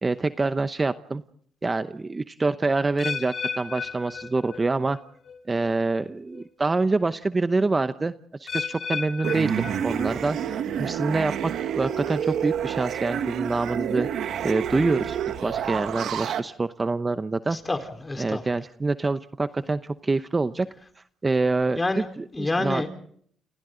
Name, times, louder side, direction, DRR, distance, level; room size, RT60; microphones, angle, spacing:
voice 1, 0.0-1.2 1.6-5.0 5.5-8.1 8.4-17.6 18.2-20.7 21.2-22.8, right 3 dB, 25° right, 11 dB, 0.8 m, -26 dB
sound 1, 3.0-5.0 5.3-5.7 6.4-6.5 8.5-10.4 10.7-11.2 11.8-11.9, left 6 dB, 50° left, 3.9 m, -34 dB
sound 2, 9.2-16.4, right 9 dB, 75° right, 1.6 m, -29 dB
voice 2, 17.5-18.4 21.8-22.0 22.3-22.9, left 2 dB, 20° left, 7 dB, 4.2 m, -28 dB
29.5 x 29.0 x 3.9 m, 0.62 s
cardioid pair, 90°, 0 cm